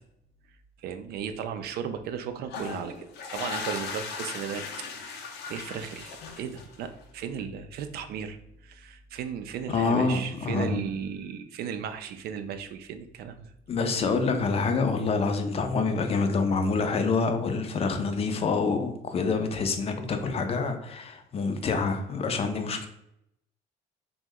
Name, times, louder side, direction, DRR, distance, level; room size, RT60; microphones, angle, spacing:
voice 1, 0.8-3.1 3.3-13.5, right 7 dB, 70° right, 8 dB, 0.4 m, -36 dB
sound 1, 2.4-7.0, left 5 dB, 80° left, 0.6 m, -37 dB
voice 2, 9.7-10.8 13.7-22.9, left 4 dB, 35° left, 6 dB, 0.4 m, -27 dB
2.9 x 2.1 x 3.5 m, 0.79 s
cardioid pair, 110°, 17 cm